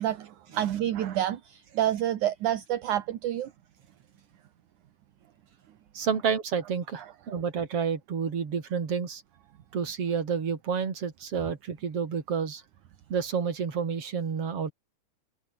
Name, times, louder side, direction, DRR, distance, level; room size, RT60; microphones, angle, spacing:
voice 1, 0.0-3.5, right 12 dB, 65° right, 2.8 m, -28 dB
voice 2, 5.9-9.2 9.7-12.6 13.1-14.7, right 6 dB, 45° right, 3.9 m, -30 dB
omnidirectional pair, 3.9 m